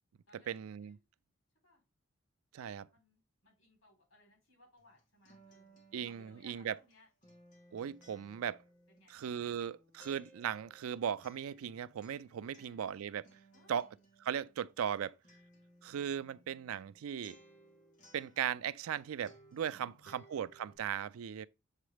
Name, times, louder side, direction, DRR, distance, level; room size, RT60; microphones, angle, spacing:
voice 1, 0.5-0.9 2.5-2.9 5.9-6.8 7.7-8.6 9.1-13.2 13.7-13.9 14.2-15.1 15.8-17.4 18.1-21.5, right 8 dB, 90° right, 0.4 m, -38 dB
voice 2, 2.9-5.8 6.0-7.1 8.9-9.7 12.5-12.8 13.5-13.8 19.7-20.3, left 1 dB, 75° left, 3.6 m, -66 dB
Acoustic guitar, 4.8-19.0 19.2-20.8, equal, 40° left, 2.1 m, -63 dB
7.3 x 3.9 x 3.3 m
head